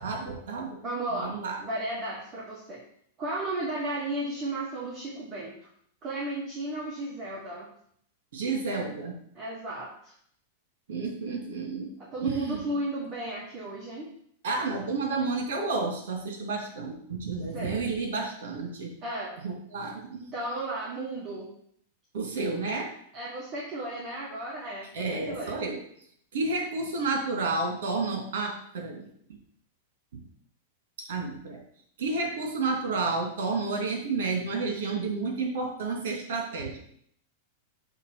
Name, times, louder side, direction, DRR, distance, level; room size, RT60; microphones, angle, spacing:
voice 1, 0.0-0.8 1.2-1.6 8.3-9.1 10.9-11.9 12.2-12.7 14.4-18.9 19.4-20.3 22.1-22.9 24.9-25.8 26.3-29.1 30.1-30.2 31.0-31.6 32.0-36.8, right 3 dB, 75° right, 1 dB, 2.4 m, -31 dB
voice 2, 0.8-1.4 1.6-2.8 3.2-5.5 6.0-7.7 9.3-10.1 12.1-14.1 17.5-18.0 19.0-19.4 20.3-21.5 23.1-24.9 25.3-25.6, right 1 dB, 25° right, -5 dB, 1.5 m, -34 dB
6.4 x 3.6 x 5.8 m, 0.65 s
supercardioid pair, 155°, 0 cm